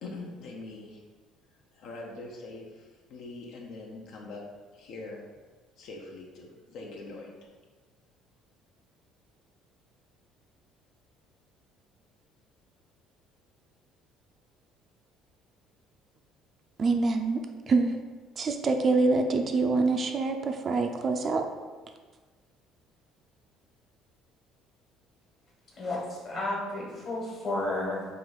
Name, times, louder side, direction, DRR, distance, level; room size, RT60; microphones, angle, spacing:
voice 1, 0.0-1.0 1.7-4.4 4.7-5.2 5.8-7.3, left 3 dB, 70° left, -1 dB, 0.5 m, -43 dB
voice 2, 16.8-18.0 18.4-21.5, right 3 dB, 40° right, 5 dB, 0.3 m, -25 dB
voice 3, 25.8-28.0, left 2 dB, 45° left, -3 dB, 1.3 m, -32 dB
3.1 x 2.4 x 3.8 m, 1.4 s
supercardioid pair, 90°, 0 cm